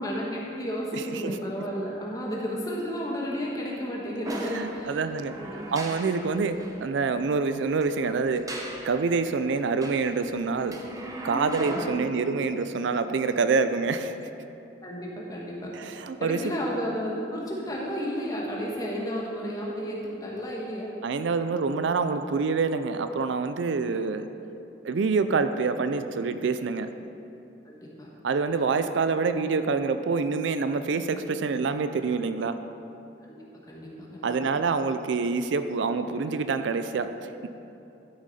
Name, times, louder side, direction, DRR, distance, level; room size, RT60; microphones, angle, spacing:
voice 1, 0.0-5.0 5.3-5.9 11.7-11.9 14.8-15.8 16.1-20.9 27.7-28.1 33.2-33.4 33.7-34.3, equal, 20° left, -4 dB, 1.3 m, -32 dB
voice 2, 0.9-1.4 4.5-5.4 5.7-8.4 8.8-10.8 11.2-14.2 15.7-16.5 21.0-24.3 24.8-26.9 28.2-32.6 34.2-37.5, right 4 dB, 75° right, 10 dB, 0.4 m, -26 dB
sound 1, 4.2-6.8 7.7-9.0 9.6-11.9, right 1 dB, 20° right, 0.8 m, -38 dB
12.0 x 6.3 x 4.2 m, 2.8 s
head